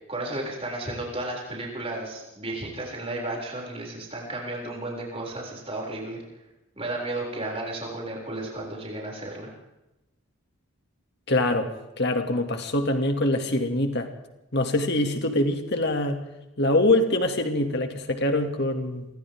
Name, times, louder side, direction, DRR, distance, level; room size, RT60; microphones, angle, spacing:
voice 1, 0.1-6.2 6.8-9.5, right 2 dB, 25° right, -2 dB, 6.9 m, -33 dB
voice 2, 11.3-14.1 14.5-16.2 16.6-19.1, left 1 dB, 50° left, 5 dB, 2.6 m, -24 dB
28.5 x 24.5 x 3.8 m, 0.95 s
head